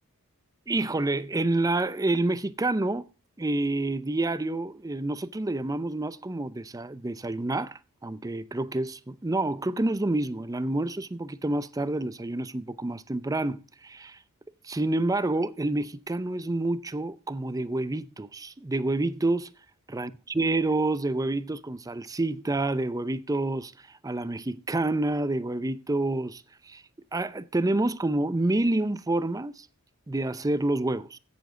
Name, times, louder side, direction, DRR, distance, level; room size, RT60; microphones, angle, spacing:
voice 1, 0.7-3.1 3.4-14.2 14.6-19.5 19.9-26.8 27.1-29.7 30.1-31.2, right 2 dB, 15° right, 0.5 m, -28 dB
16.0 x 7.0 x 3.7 m
head